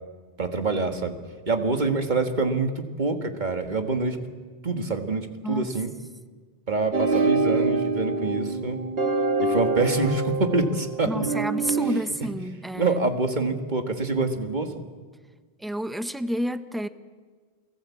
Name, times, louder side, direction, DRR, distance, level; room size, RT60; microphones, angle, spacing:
voice 1, 0.4-1.2 1.5-4.2 4.6-5.9 6.7-8.8 9.4-11.3 12.8-14.7, right 3 dB, 45° right, 6 dB, 2.0 m, -26 dB
sound 1, 6.9-12.0, right 3 dB, 60° right, 2.3 m, -25 dB
voice 2, 11.0-13.0 15.6-16.9, equal, ahead, 11 dB, 0.8 m, -30 dB
29.0 x 18.0 x 8.5 m, 1.5 s
omnidirectional pair, 1.1 m